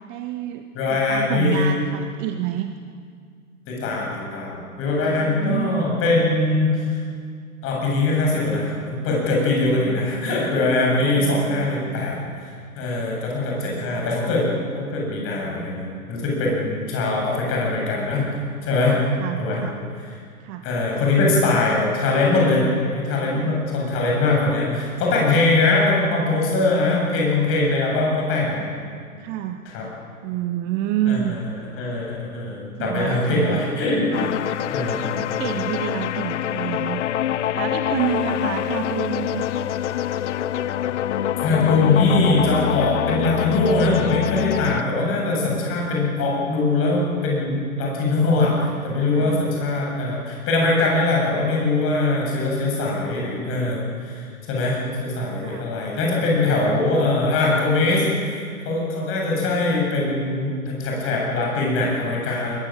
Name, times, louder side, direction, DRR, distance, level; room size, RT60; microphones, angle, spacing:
voice 1, 0.1-2.7 5.0-5.9 9.7-10.3 11.0-12.1 13.6-14.3 18.8-19.8 20.4-20.7 23.3-23.6 29.2-29.6 30.2-31.4 32.8-33.6 35.1-37.1 37.5-39.5 49.2-49.5 55.4-55.7, right 11 dB, 25° right, 8 dB, 0.8 m, -29 dB
voice 2, 0.7-1.7 3.7-7.0 7.6-14.5 14.7-18.3 18.6-19.0 19.4-19.6 20.0-20.1 20.6-28.7 29.7-29.9 31.1-31.5 31.8-34.3 34.7-35.2 41.4-62.6, left 2 dB, 30° left, -2 dB, 7.7 m, -22 dB
sound 1, 34.1-44.8, left 11 dB, 55° left, 0.6 m, -25 dB
21.5 x 20.0 x 7.7 m, 2.1 s
figure-of-eight pair, 105°, 44 cm